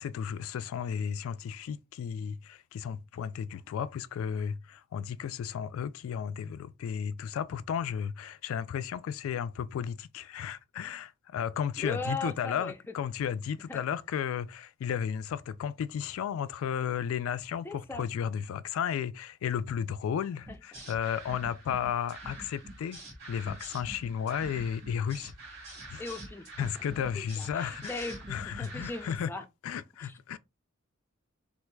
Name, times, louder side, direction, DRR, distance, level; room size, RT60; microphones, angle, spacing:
voice 1, 0.0-23.0 23.3-25.3 25.9-26.0 26.6-29.3 29.6-30.4, left 8 dB, 80° left, 0.3 m, -34 dB
voice 2, 11.8-12.8 13.7-13.8 17.6-18.1 20.5-20.6 26.0-26.7 27.1-29.4 30.0-30.1, left 2 dB, 10° left, 0.4 m, -38 dB
sound 1, 20.5-29.2, right 2 dB, 55° right, 1.8 m, -46 dB
4.4 x 2.4 x 2.2 m
head